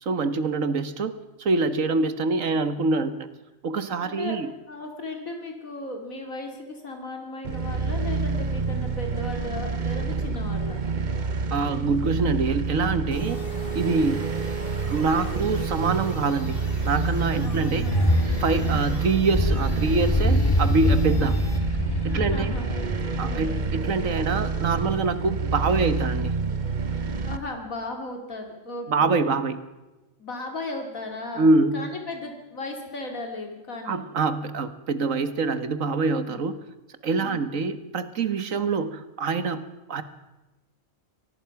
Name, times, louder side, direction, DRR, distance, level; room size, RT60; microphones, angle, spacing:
voice 1, 0.0-1.1 1.4-3.3 3.6-4.5 11.5-13.4 13.8-14.2 14.9-16.6 16.8-17.9 18.4-21.4 22.0-22.5 23.2-26.4 28.9-29.6 31.4-31.8 33.9-36.6 37.0-39.6 39.9-40.0, right 3 dB, 75° right, 12 dB, 1.8 m, -25 dB
voice 2, 4.0-4.4 4.7-10.8 17.4-18.0 18.6-18.8 21.1-21.3 22.0-22.7 23.2-23.5 27.2-29.1 30.2-34.0 36.3-36.4 37.2-37.4, left 2 dB, 85° left, 3 dB, 3.0 m, -36 dB
sound 1, 7.4-27.4, right 4 dB, 40° right, 1.0 m, -28 dB
sound 2, 13.1-21.6, right 4 dB, 40° left, 2.4 m, -40 dB
sound 3, 17.7-24.0, left 1 dB, 15° left, 1.6 m, -25 dB
23.5 x 19.0 x 5.9 m, 1.1 s
omnidirectional pair, 1.4 m